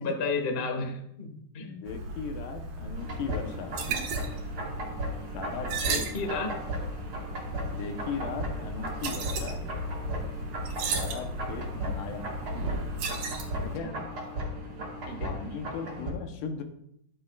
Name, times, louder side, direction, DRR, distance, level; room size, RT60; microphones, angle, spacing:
voice 1, 0.0-1.7 5.8-6.5 13.6-13.9 15.1-15.3, left 3 dB, 30° left, 3 dB, 1.1 m, -33 dB
voice 2, 1.6-3.8 5.3-6.6 7.7-9.7 10.9-12.4 13.7-14.1 15.2-16.6, left 5 dB, 80° left, 5 dB, 2.6 m, -38 dB
sound 1, 1.9-13.8, right 3 dB, 80° right, 3.2 m, -35 dB
sound 2, 3.0-16.1, equal, 40° right, 3.4 m, -36 dB
13.0 x 11.5 x 2.5 m, 0.73 s
omnidirectional pair, 3.7 m